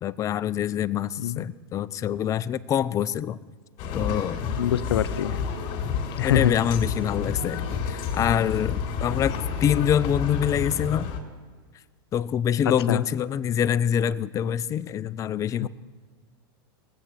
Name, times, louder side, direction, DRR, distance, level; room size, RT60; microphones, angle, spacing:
voice 1, 0.0-3.4 3.9-4.4 6.2-11.1 12.1-15.7, left 9 dB, 25° left, 14 dB, 0.5 m, -25 dB
sound 1, 3.8-11.2, left 6 dB, 45° left, 2.7 m, -30 dB
voice 2, 4.5-5.4 6.2-6.5 12.9-13.0 15.6-15.7, left 11 dB, 85° left, 14 dB, 0.7 m, -24 dB
19.0 x 8.1 x 7.4 m, 1.5 s
supercardioid pair, 130°, 13 cm